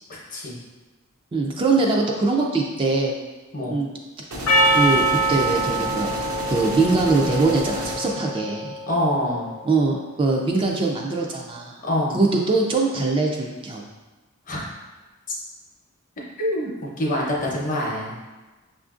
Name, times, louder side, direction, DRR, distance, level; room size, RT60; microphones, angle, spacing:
voice 1, 1.3-3.1 3.7-3.9 4.7-6.2 6.5-8.7 9.6-11.8 12.1-13.8, right 3 dB, 25° right, -1 dB, 0.3 m, -22 dB
sound 1, 4.3-8.3, right 1 dB, 80° right, 0.6 m, -32 dB
Percussion, 4.5-9.0, right 1 dB, 85° left, 0.5 m, -24 dB
voice 2, 8.9-9.5 11.8-12.2 14.5-14.6 16.4-16.7 17.0-18.1, left 1 dB, 40° left, -3 dB, 0.8 m, -25 dB
5.8 x 2.5 x 2.4 m, 1.2 s
head